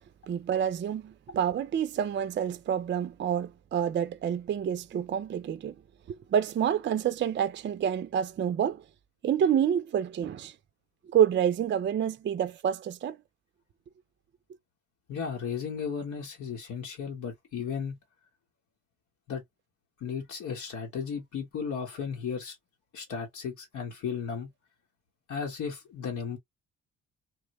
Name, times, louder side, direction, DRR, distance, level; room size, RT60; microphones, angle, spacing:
voice 1, 0.3-5.7 6.1-8.8 9.2-10.5 11.1-13.2, right 9 dB, 40° right, 0.5 m, -28 dB
voice 2, 15.1-18.0 19.3-19.4 20.0-22.6 22.9-24.5 25.3-26.4, left 6 dB, 75° left, 1.3 m, -35 dB
3.5 x 2.2 x 3.0 m
cardioid pair, 90°, 30 cm